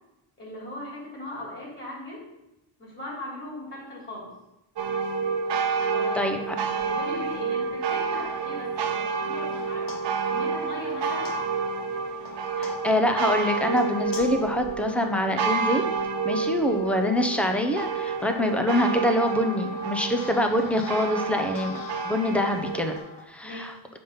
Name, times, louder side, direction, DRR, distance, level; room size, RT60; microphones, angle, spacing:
voice 1, 0.4-2.2 2.8-4.3 5.9-11.4 16.4-16.8 23.4-23.8, left 1 dB, 25° left, -5 dB, 3.3 m, -39 dB
sound 1, 4.8-23.0, right 5 dB, 60° right, 1.0 m, -29 dB
voice 2, 6.1-6.5 12.6-15.8 16.2-22.9 23.3-23.7, left 1 dB, 5° left, 5 dB, 0.6 m, -25 dB
sound 2, 8.3-15.8 16.4-23.2, left 4 dB, 45° left, 1.1 m, -44 dB
7.2 x 5.3 x 5.5 m, 0.94 s
wide cardioid pair, 170°, 47 cm